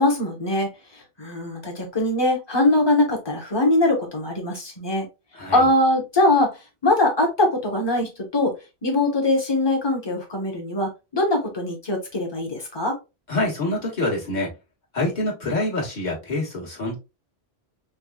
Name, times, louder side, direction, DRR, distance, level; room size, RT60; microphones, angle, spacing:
voice 1, 0.0-5.1 5.5-6.5 6.8-8.6 8.8-13.0, left 1 dB, 25° left, 1.1 m, -22 dB
voice 2, 13.3-14.5 14.9-17.0, left 2 dB, 45° left, 1.6 m, -26 dB
5.1 x 2.3 x 2.3 m
omnidirectional pair, 1.1 m